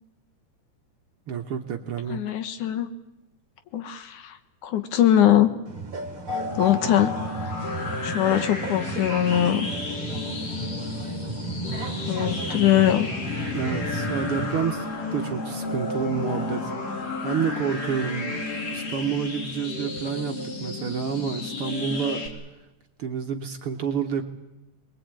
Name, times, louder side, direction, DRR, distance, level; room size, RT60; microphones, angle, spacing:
voice 1, 1.3-2.2 6.8-6.9 13.5-14.9 15.1-18.4 18.7-22.3 23.0-24.2, right 7 dB, 60° right, 5 dB, 1.7 m, -29 dB
voice 2, 2.1-2.9 3.7-4.4 4.6-5.5 6.6-7.2 8.0-9.7 12.1-13.1, left 11 dB, 75° left, 10 dB, 2.8 m, -21 dB
sound 1, 5.7-14.6, right 1 dB, 30° right, 2.2 m, -33 dB
sound 2, 6.3-22.3, left 3 dB, 60° left, 4.8 m, -32 dB
23.5 x 21.0 x 8.9 m, 0.98 s
omnidirectional pair, 3.6 m